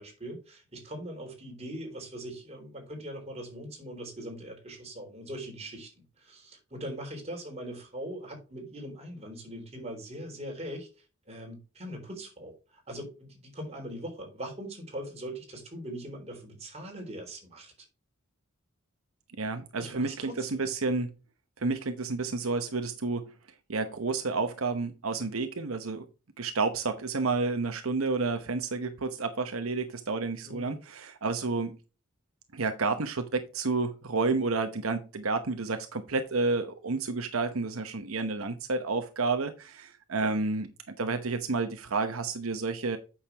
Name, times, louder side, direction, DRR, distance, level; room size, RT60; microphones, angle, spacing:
voice 1, 0.0-10.9 11.3-17.9 19.8-20.7 30.5-30.8 40.2-40.4, right 1 dB, 30° right, 3.6 m, -41 dB
voice 2, 19.4-21.1 21.6-23.2 23.7-26.1 26.4-31.8 32.5-40.7 41.0-43.0, right 3 dB, 80° right, 0.9 m, -30 dB
8.7 x 6.5 x 3.4 m
head